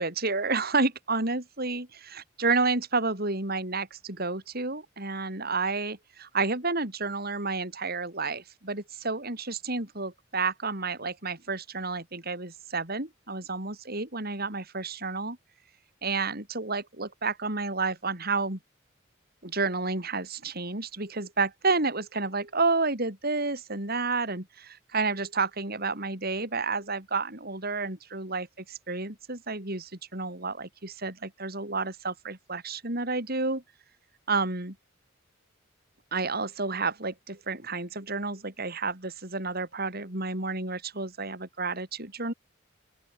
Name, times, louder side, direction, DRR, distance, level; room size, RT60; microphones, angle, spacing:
voice 1, 0.0-15.4 16.0-18.6 19.4-33.6 34.3-34.8 36.1-42.3, right 3 dB, 50° right, 5.3 m, -30 dB
open air
head